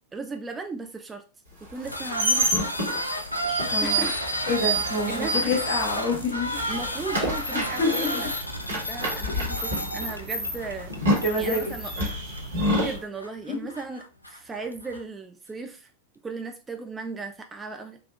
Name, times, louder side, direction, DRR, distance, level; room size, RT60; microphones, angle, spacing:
voice 1, 0.1-1.2 1.7-2.7 3.8-4.2 5.1-5.6 6.7-8.3 8.9-10.9 11.2-11.9 12.7-15.9 16.2-18.0, right 4 dB, 15° right, 5 dB, 0.3 m, -36 dB
sound 1, 1.7-6.3 6.6-13.0, right 1 dB, 70° right, 1.3 m, -28 dB
sound 2, 1.8-15.0, equal, 85° left, 0.4 m, -34 dB
sound 3, 3.5-13.0, right 2 dB, 50° right, 0.8 m, -42 dB
voice 2, 3.7-4.1 4.4-6.7 7.5-8.2 11.2-11.7 13.6-13.7, left 2 dB, 50° left, 0 dB, 1.2 m, -27 dB
3.3 x 2.3 x 2.4 m, 0.34 s
figure-of-eight pair, 90°, 0 cm